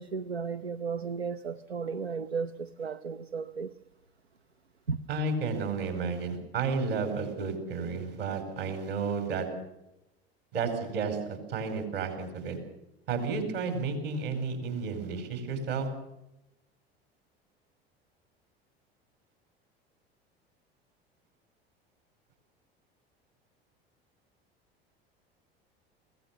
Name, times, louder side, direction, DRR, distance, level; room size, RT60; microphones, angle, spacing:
voice 1, 0.0-3.7 4.9-5.0, right 5 dB, 85° right, 0.6 m, -34 dB
voice 2, 5.1-9.5 10.5-12.6 13.1-15.9, right 4 dB, 65° right, 4.9 m, -32 dB
23.0 x 17.0 x 7.1 m
figure-of-eight pair, 70°, 31 cm